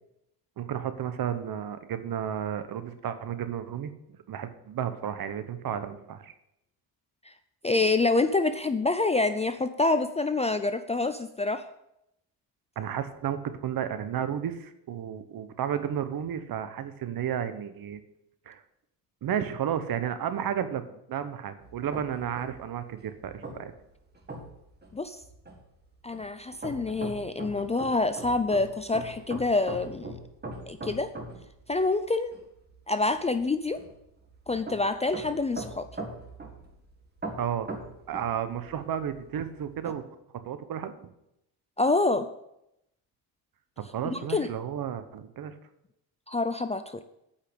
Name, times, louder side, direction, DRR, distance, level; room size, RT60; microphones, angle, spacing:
voice 1, 0.6-3.9 4.3-6.3 12.8-18.0 18.5-18.6 19.2-23.7 37.4-37.7 38.1-40.0 40.4-41.1 43.9-45.5, right 9 dB, 55° right, 11 dB, 1.1 m, -32 dB
voice 2, 7.6-11.7 24.9-25.2 26.0-30.2 30.7-31.1 31.7-32.3 32.9-33.8 34.5-35.9 41.8-42.3 44.1-44.5 46.3-47.0, left 3 dB, 15° left, 10 dB, 0.4 m, -27 dB
sound 1, 21.6-39.9, right 2 dB, 25° right, 2.0 m, -42 dB
8.7 x 5.6 x 8.1 m, 0.82 s
cardioid pair, 100°, 42 cm